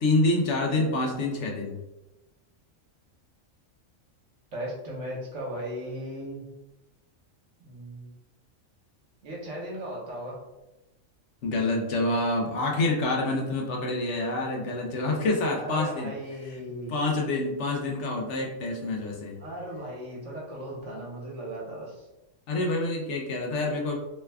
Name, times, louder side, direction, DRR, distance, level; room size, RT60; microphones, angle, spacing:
voice 1, 0.0-1.8 11.4-16.1 16.9-19.3 22.5-24.0, left 2 dB, 65° left, 0 dB, 0.9 m, -27 dB
voice 2, 4.5-6.4 7.6-8.1 9.2-10.4 15.6-16.9 19.4-22.1, right 1 dB, 65° right, -4 dB, 1.3 m, -37 dB
3.2 x 2.2 x 3.3 m, 0.99 s
omnidirectional pair, 1.4 m